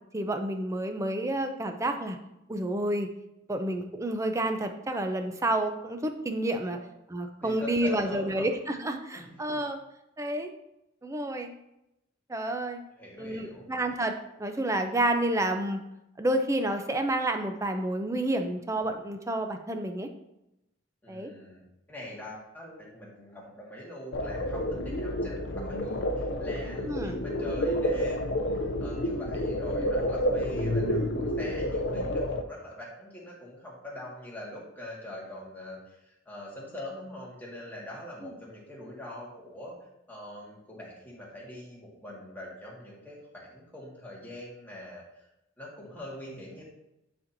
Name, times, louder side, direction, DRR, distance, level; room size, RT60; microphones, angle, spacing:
voice 1, 0.1-2.2 2.5-3.1 3.5-6.8 7.1-9.8 10.2-10.5 11.0-11.5 12.3-12.8 13.2-14.1 14.4-15.8 16.2-20.1 21.1-21.3 26.9-27.2 38.2-38.3, right 1 dB, 15° right, 6 dB, 0.5 m, -29 dB
voice 2, 7.4-8.5 9.1-9.7 13.0-13.7 21.0-28.3 28.8-39.8 40.1-45.3 45.6-46.6, left 1 dB, 10° left, -5 dB, 1.8 m, -43 dB
sound 1, 24.1-32.4, equal, 60° left, 0.5 m, -29 dB
9.3 x 4.3 x 2.7 m, 0.87 s
head